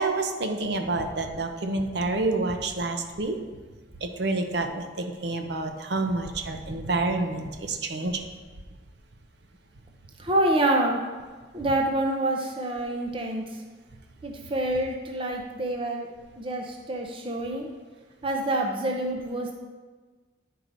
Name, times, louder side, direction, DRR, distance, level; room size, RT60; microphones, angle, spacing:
voice 1, 0.0-3.3 4.0-8.3, right 2 dB, 60° right, 5 dB, 0.7 m, -28 dB
voice 2, 10.2-11.0 11.5-13.4 14.2-16.1 16.4-17.7 18.2-19.5, right 1 dB, 30° right, 2 dB, 0.6 m, -27 dB
10.5 x 4.7 x 3.9 m, 1.4 s
head